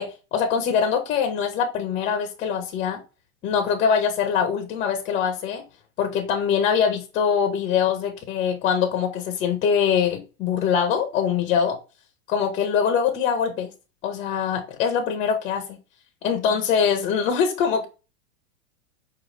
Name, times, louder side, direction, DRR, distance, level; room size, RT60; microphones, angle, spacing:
voice 1, 0.0-3.0 3.4-5.6 6.0-11.8 12.3-13.7 14.0-15.8 16.2-17.8, left 7 dB, 20° left, 0.5 m, -23 dB
5.0 x 2.3 x 3.1 m
supercardioid pair, 145°, 40 cm